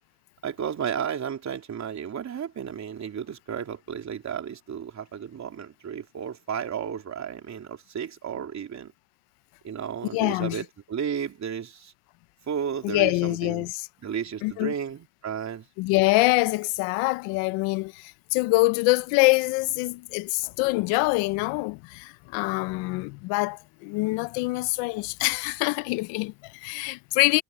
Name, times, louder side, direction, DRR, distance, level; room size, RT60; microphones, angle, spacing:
voice 1, 0.4-8.9 9.6-11.9 12.5-13.7 14.0-15.7, right 8 dB, 40° right, 3.4 m, -33 dB
voice 2, 10.1-10.6 12.8-13.9 14.4-14.7 15.8-27.4, left 23 dB, 85° left, 0.9 m, -25 dB
supercardioid pair, 100°, 42 cm